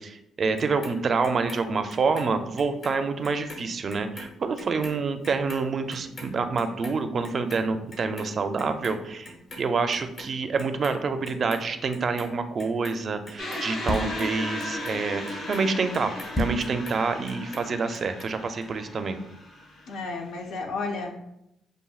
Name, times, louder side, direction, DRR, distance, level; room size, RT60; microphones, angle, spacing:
voice 1, 0.0-15.2 15.5-16.1 16.4-19.2, right 4 dB, 45° right, 8 dB, 0.4 m, -27 dB
Clock, 0.6-3.0 3.2-9.7 9.9-11.0 11.2-12.3 12.6-17.0 17.3-18.3 18.6-18.7, left 1 dB, 45° left, 0.9 m, -43 dB
sound 1, 13.4-20.5, left 1 dB, 65° left, 1.5 m, -36 dB
sound 2, 13.9-14.3 16.3-16.7, equal, 15° left, 0.7 m, -26 dB
voice 2, 19.9-21.2, left 3 dB, 80° left, 3 dB, 0.7 m, -32 dB
6.8 x 2.6 x 2.3 m, 0.83 s
cardioid pair, 90°, 0 cm